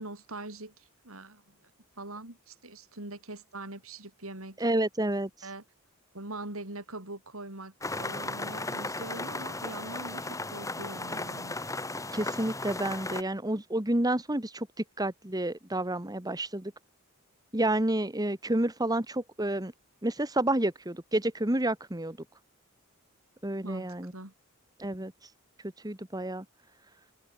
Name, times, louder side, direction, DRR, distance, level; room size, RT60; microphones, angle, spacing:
voice 1, 0.0-1.4 2.0-4.6 5.4-5.6 6.1-11.5 23.6-23.9 24.1-24.3, right 2 dB, 70° right, 5.6 m, -42 dB
voice 2, 4.6-5.3 12.1-14.7 15.0-16.7 17.5-19.7 20.0-22.2 23.4-24.1 24.8-25.1 25.8-26.4, right 1 dB, 15° right, 1.7 m, -29 dB
sound 1, 7.8-13.2, left 2 dB, 15° left, 5.7 m, -36 dB
head